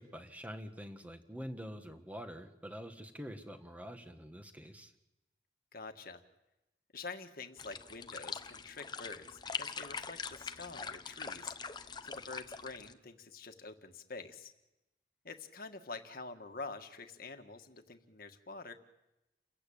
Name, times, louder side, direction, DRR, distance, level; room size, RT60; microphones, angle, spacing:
voice 1, 0.0-4.9, equal, 10° right, 7 dB, 1.6 m, -46 dB
voice 2, 5.7-6.2 6.9-14.5 15.2-18.7, left 3 dB, 55° left, 6 dB, 1.7 m, -47 dB
sound 1, 7.6-12.9, left 5 dB, 25° left, 0.8 m, -43 dB
29.5 x 15.5 x 8.7 m, 0.95 s
head